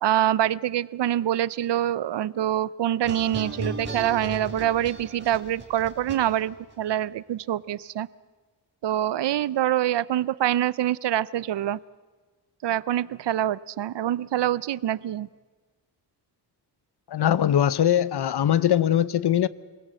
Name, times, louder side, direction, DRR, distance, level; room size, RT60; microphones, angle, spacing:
voice 1, 0.0-8.1 8.8-11.8 12.6-15.3, right 12 dB, 85° right, 0.6 m, -25 dB
sound 1, 3.0-6.7, right 2 dB, 25° right, 3.5 m, -36 dB
voice 2, 17.1-19.5, left 10 dB, 70° left, 0.7 m, -21 dB
24.5 x 16.5 x 7.6 m
cardioid pair, 75°, 41 cm